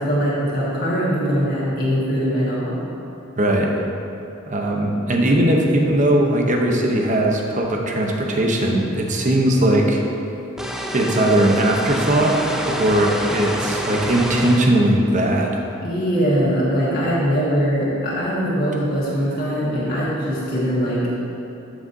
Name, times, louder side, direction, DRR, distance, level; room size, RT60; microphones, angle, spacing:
voice 1, 0.0-2.8 15.8-21.1, equal, 50° left, -9 dB, 1.7 m, -21 dB
voice 2, 3.4-3.7 4.5-10.0 10.9-12.4 12.7-15.6, right 1 dB, 40° right, 1 dB, 0.8 m, -19 dB
sound 1, 10.6-14.7, equal, 5° right, 0.4 m, -27 dB
11.5 x 6.1 x 2.7 m, 2.9 s
head